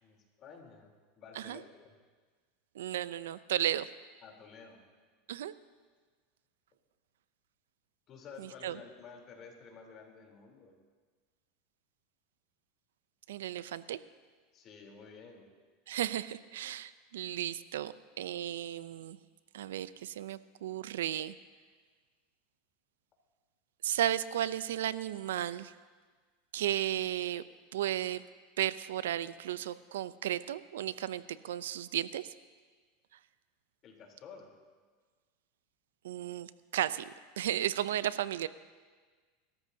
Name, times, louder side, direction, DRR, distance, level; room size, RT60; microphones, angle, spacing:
voice 1, 0.0-2.0 4.2-4.8 8.1-10.7 14.5-15.5 33.8-34.5, left 5 dB, 40° left, 1 dB, 3.6 m, -52 dB
voice 2, 2.8-3.9 5.3-5.5 8.4-8.8 13.3-14.0 15.9-19.2 19.5-21.3 23.8-25.7 26.5-27.4 27.7-28.2 28.6-32.3 36.0-38.5, right 12 dB, 85° right, 15 dB, 0.5 m, -34 dB
28.0 x 13.5 x 2.8 m, 1.5 s
supercardioid pair, 115°, 0 cm